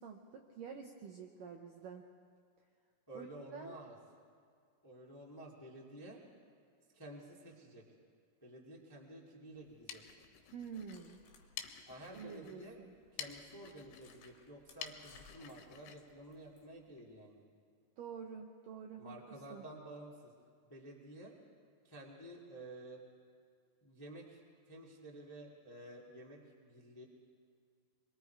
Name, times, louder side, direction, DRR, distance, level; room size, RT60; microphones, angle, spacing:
voice 1, 0.0-2.1 3.1-3.8 10.5-11.2 12.1-12.9 18.0-19.6, right 6 dB, 80° right, 2 dB, 1.9 m, -48 dB
voice 2, 3.1-3.9 4.8-6.2 6.9-7.8 8.4-10.0 11.9-12.8 13.1-17.4 19.0-20.3 20.6-21.3 21.8-23.0 23.8-24.4 24.7-27.0, right 1 dB, 30° left, -3 dB, 0.4 m, -52 dB
sound 1, 9.6-17.1, left 9 dB, 85° left, 3.4 m, -52 dB
sound 2, 10.7-12.5 12.8-12.9 13.3-13.4 13.9-16.7, left 5 dB, 65° left, 4.1 m, -64 dB
26.5 x 22.0 x 4.7 m, 2.2 s
omnidirectional pair, 5.1 m